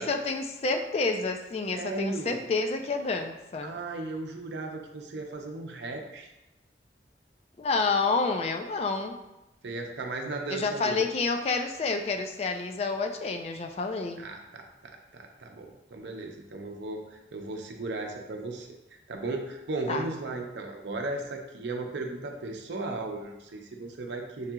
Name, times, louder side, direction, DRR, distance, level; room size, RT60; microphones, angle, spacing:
voice 1, 0.0-3.8 7.6-9.2 10.5-14.3 19.9-20.0, left 3 dB, 35° left, 5 dB, 0.3 m, -29 dB
voice 2, 1.7-2.4 3.6-6.3 9.6-11.0 14.2-18.7 19.1-24.5, right 2 dB, 85° right, 2 dB, 0.6 m, -36 dB
6.5 x 2.8 x 2.4 m, 0.93 s
head